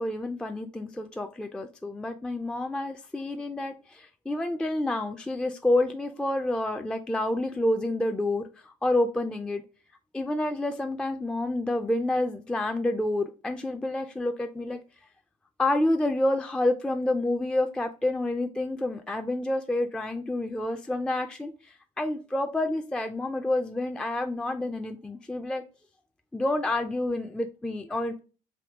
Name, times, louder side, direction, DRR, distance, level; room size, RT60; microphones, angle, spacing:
voice 1, 0.0-9.6 10.1-14.8 15.6-25.6 26.3-28.2, left 1 dB, 5° left, 5 dB, 0.3 m, -28 dB
3.6 x 2.7 x 3.4 m, 0.35 s
supercardioid pair, 80°, 15 cm